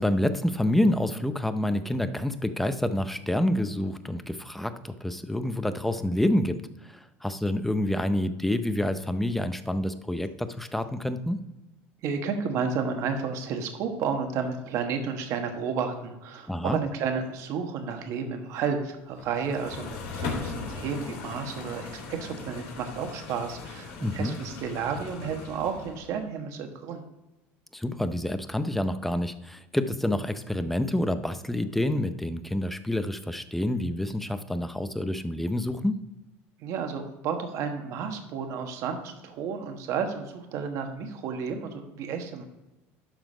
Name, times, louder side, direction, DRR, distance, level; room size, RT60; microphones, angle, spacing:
voice 1, 0.0-11.4 16.5-16.8 24.0-24.4 27.7-36.0, left 1 dB, 5° left, 11 dB, 0.5 m, -28 dB
voice 2, 12.0-27.0 36.6-42.4, right 6 dB, 60° right, 5 dB, 1.3 m, -32 dB
sound 1, 19.2-26.2, left 4 dB, 85° left, 2.6 m, -38 dB
12.0 x 3.9 x 5.0 m, 1.0 s
cardioid pair, 125°, 6 cm